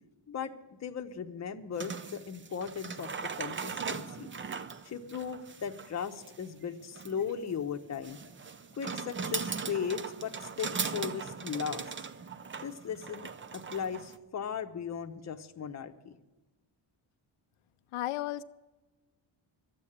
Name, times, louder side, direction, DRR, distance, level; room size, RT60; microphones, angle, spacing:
voice 1, 0.8-4.3 4.8-8.2 8.8-11.9 12.6-16.2, left 7 dB, 35° left, 0.9 m, -37 dB
sound 1, 1.7-14.2, right 5 dB, 25° right, 0.5 m, -39 dB
voice 2, 17.9-18.4, left 15 dB, 85° left, 0.6 m, -33 dB
12.5 x 8.3 x 8.7 m
cardioid pair, 135°, 49 cm